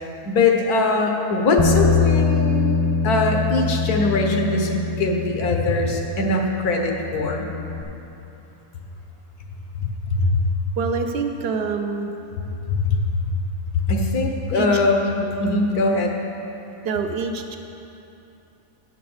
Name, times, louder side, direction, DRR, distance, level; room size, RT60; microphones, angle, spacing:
voice 1, 0.0-7.5 9.7-10.4 12.7-13.0 13.7-16.1, left 3 dB, 80° left, 2 dB, 1.5 m, -22 dB
Bass guitar, 1.6-7.8, left 4 dB, 20° left, 0.6 m, -23 dB
voice 2, 10.8-12.1 14.5-14.8 15.2-15.3 16.8-17.6, right 5 dB, 55° right, 5 dB, 0.7 m, -26 dB
9.4 x 5.8 x 7.1 m, 3.0 s
omnidirectional pair, 1.6 m